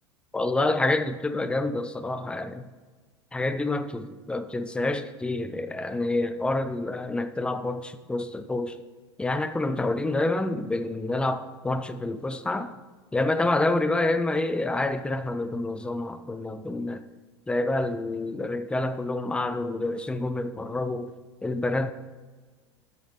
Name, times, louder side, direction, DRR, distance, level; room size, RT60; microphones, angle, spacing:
voice 1, 0.3-2.7 3.3-8.8 9.2-12.7 13.1-17.0 17.5-21.1 21.4-21.9, left 2 dB, 5° left, 0.5 m, -28 dB
8.4 x 7.9 x 3.7 m
figure-of-eight pair, 80°, 14 cm